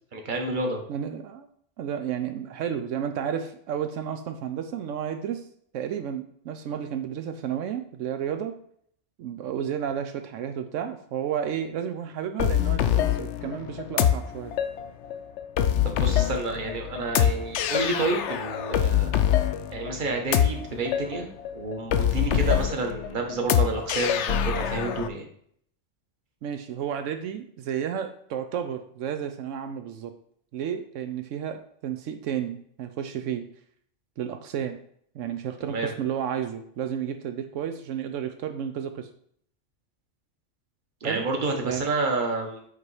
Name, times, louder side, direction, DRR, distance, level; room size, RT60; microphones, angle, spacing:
voice 1, 0.1-0.8 15.8-19.2 19.7-25.3 35.7-35.9 41.0-42.7, right 3 dB, 40° right, 2 dB, 1.2 m, -29 dB
voice 2, 0.9-1.5 1.8-5.4 5.7-8.6 9.2-14.5 22.2-22.4 26.4-30.1 30.5-33.5 34.2-34.8 35.1-39.1 41.0-41.3 41.6-41.8, right 9 dB, 85° right, 7 dB, 1.0 m, -32 dB
sound 1, 12.4-25.1, left 10 dB, 70° left, 0.8 m, -25 dB
8.2 x 3.0 x 4.7 m, 0.65 s
omnidirectional pair, 1.3 m